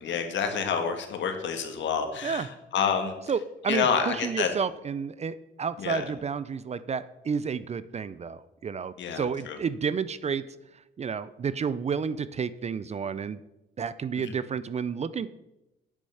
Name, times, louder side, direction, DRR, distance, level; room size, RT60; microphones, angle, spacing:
voice 1, 0.0-2.5 2.7-3.1 3.7-4.5 5.8-6.0 9.0-9.6 14.2-14.3, left 6 dB, 70° left, 6 dB, 1.5 m, -28 dB
voice 2, 3.3-10.4 11.0-13.4 13.8-15.3, right 6 dB, 35° right, 16 dB, 0.4 m, -31 dB
8.6 x 6.2 x 5.7 m, 0.93 s
cardioid pair, 90°, 20 cm